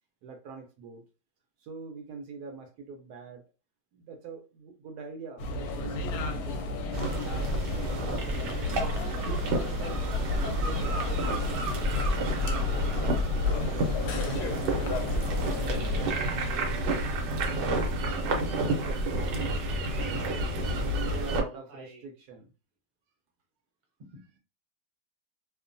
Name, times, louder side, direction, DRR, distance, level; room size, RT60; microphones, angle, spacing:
voice 1, 0.2-1.0 1.6-3.5 3.9-6.7 7.0-8.5 9.0-10.1 10.4-11.3 12.3-13.0 13.3-13.7 14.2-17.7 18.1-20.2 21.1-22.5, right 4 dB, 70° right, 1.0 m, -45 dB
sound 1, 5.4-16.1, left 2 dB, 70° left, 1.1 m, -33 dB
sound 2, 6.9-21.4, right 1 dB, 90° right, 1.3 m, -30 dB
voice 2, 21.1-22.0 24.0-24.4, right 1 dB, 45° right, 0.6 m, -49 dB
3.0 x 2.2 x 2.4 m
omnidirectional pair, 1.9 m